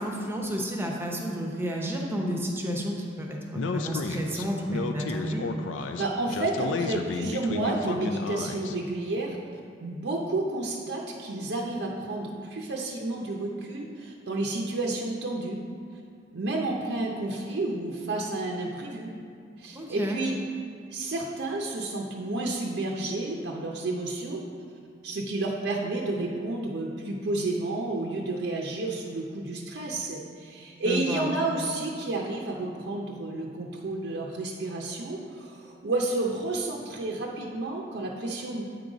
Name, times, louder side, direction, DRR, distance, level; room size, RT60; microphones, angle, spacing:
voice 1, 0.0-5.4 19.7-20.2 30.7-31.3, equal, 15° right, -1 dB, 0.8 m, -31 dB
Speech, 3.5-8.7, left 4 dB, 80° left, 0.4 m, -32 dB
voice 2, 6.0-9.4 9.8-15.6 15.9-16.0 16.3-19.1 19.6-20.3 20.9-24.4 25.0-38.6, right 2 dB, 65° right, -1 dB, 0.6 m, -31 dB
8.2 x 3.9 x 4.9 m, 2.3 s
head